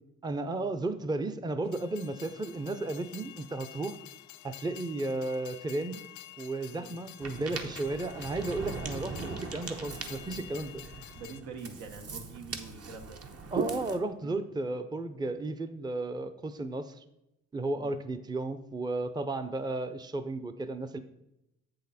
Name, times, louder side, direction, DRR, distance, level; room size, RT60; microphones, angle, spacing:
voice 1, 0.2-4.0 4.4-6.0 6.4-10.8 13.5-17.0 17.5-21.0, right 2 dB, 15° right, 10 dB, 0.5 m, -34 dB
Train, 1.6-11.4, left 14 dB, 80° left, 0.5 m, -49 dB
voice 2, 6.6-7.0 11.2-13.2 14.2-14.4 17.8-18.0, right 4 dB, 85° right, 5 dB, 1.2 m, -45 dB
Ocean, 7.2-14.0, right 4 dB, 50° right, 1.1 m, -39 dB
8.0 x 6.5 x 4.1 m, 0.87 s
cardioid pair, 90°, 30 cm